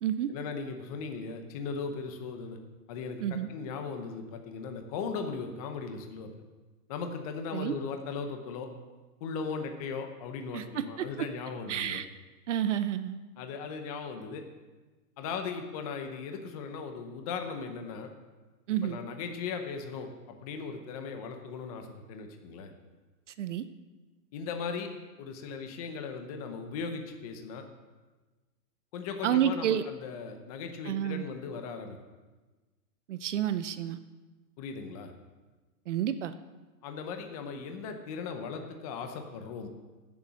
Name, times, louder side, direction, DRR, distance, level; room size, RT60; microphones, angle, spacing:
voice 1, 0.3-2.6 2.9-6.3 6.9-8.7 9.2-12.0 13.4-14.4 15.2-18.1 18.8-22.7 24.3-24.9 25.2-27.6 28.9-32.0 34.6-35.1 36.8-39.7, left 5 dB, 25° left, 5 dB, 0.8 m, -38 dB
voice 2, 10.5-11.1 11.7-12.1 12.5-13.2 18.7-19.0 23.4-23.6 29.2-29.8 30.9-31.3 33.1-34.0 35.9-36.4, right 10 dB, 50° right, 12 dB, 0.6 m, -30 dB
15.5 x 7.1 x 6.2 m, 1.2 s
hypercardioid pair, 170°, 47 cm